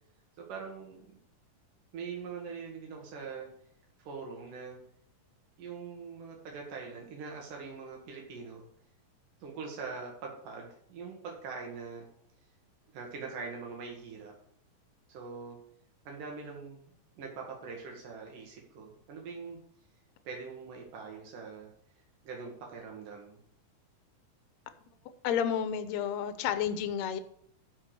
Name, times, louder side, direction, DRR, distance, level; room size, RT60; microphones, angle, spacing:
voice 1, 0.4-1.0 1.9-3.5 4.0-4.8 5.6-8.6 9.4-12.1 12.9-14.3 15.1-15.6 16.1-16.8 17.2-19.6 20.3-21.7 22.2-23.4, right 5 dB, 80° right, 3.3 m, -43 dB
voice 2, 25.2-27.2, left 8 dB, 70° left, 1.9 m, -31 dB
12.0 x 4.8 x 6.5 m
omnidirectional pair, 3.7 m